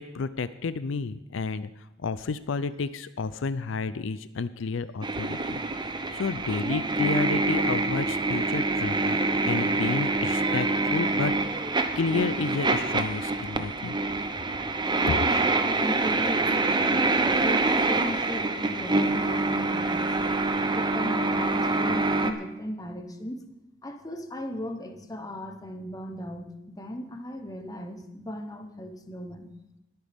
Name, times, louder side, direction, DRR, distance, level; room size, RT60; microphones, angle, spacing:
voice 1, 0.0-9.2 9.4-11.3 12.0-14.0 15.1-15.2, left 4 dB, 80° left, 14 dB, 0.5 m, -31 dB
sound 1, 5.0-22.3, right 3 dB, 25° right, 0.7 m, -26 dB
voice 2, 15.0-15.3 15.6-20.0 20.7-23.4 23.8-29.5, left 1 dB, 20° left, 6 dB, 1.1 m, -37 dB
21.0 x 9.0 x 3.6 m, 0.91 s
head